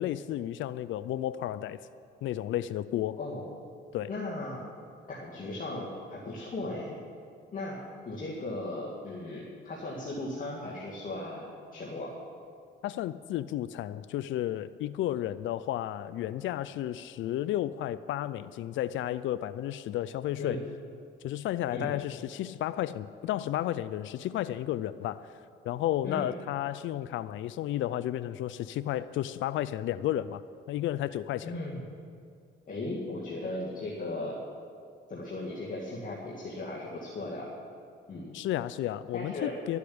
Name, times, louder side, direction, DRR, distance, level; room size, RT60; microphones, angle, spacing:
voice 1, 0.0-1.8 2.2-3.2 3.9-4.1 12.8-20.6 21.2-25.3 25.6-30.4 30.7-31.5 38.3-39.8, left 13 dB, 75° left, 15 dB, 0.4 m, -32 dB
voice 2, 4.1-4.6 5.1-7.0 7.5-7.8 8.1-12.1 20.4-20.6 21.7-21.9 26.0-26.3 31.4-31.8 32.7-34.4 35.1-37.5 38.1-38.4 39.1-39.5, left 2 dB, 45° left, -5 dB, 2.3 m, -37 dB
12.0 x 8.3 x 8.7 m, 2.4 s
cardioid pair, 90°, 20 cm